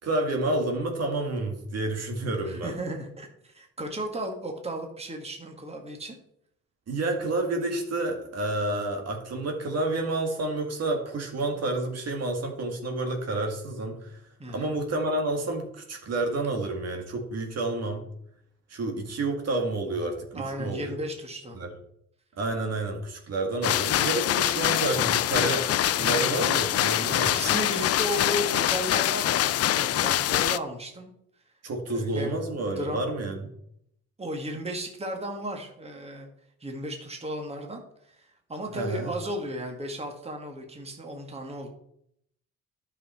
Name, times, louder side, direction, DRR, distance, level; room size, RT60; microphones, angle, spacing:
voice 1, 0.0-2.7 6.9-14.2 14.5-18.1 18.7-21.0 21.6-21.7 22.4-25.7 26.0-27.3 31.6-33.5 38.7-39.1, right 2 dB, 55° right, 3 dB, 2.0 m, -29 dB
voice 2, 2.4-6.2 14.4-14.7 20.3-21.6 26.0-26.6 27.2-31.1 31.9-33.1 34.2-36.3 36.6-37.8 38.1-41.7, right 1 dB, 20° right, 2 dB, 1.9 m, -35 dB
sound 1, 23.6-30.6, left 12 dB, 55° left, 0.5 m, -24 dB
11.0 x 5.8 x 4.4 m, 0.73 s
cardioid pair, 90°, 30 cm